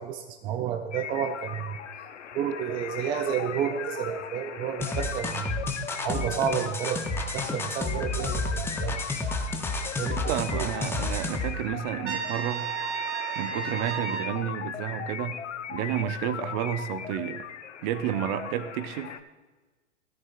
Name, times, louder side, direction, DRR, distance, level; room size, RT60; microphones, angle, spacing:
voice 1, 0.0-1.8 2.3-5.6 6.0-9.0 10.0-11.0, right 9 dB, 15° right, 6 dB, 0.3 m, -31 dB
sound 1, 0.9-19.2, left 8 dB, 85° left, 0.8 m, -38 dB
sound 2, 4.8-11.5, left 2 dB, 5° left, 0.7 m, -31 dB
voice 2, 10.3-12.7 13.4-15.4 15.7-17.4 17.8-19.1, right 10 dB, 40° right, 11 dB, 0.8 m, -31 dB
Trumpet, 12.0-14.4, right 8 dB, 70° right, 2.5 m, -33 dB
14.0 x 13.0 x 2.5 m, 1.2 s
hypercardioid pair, 120°, 35 cm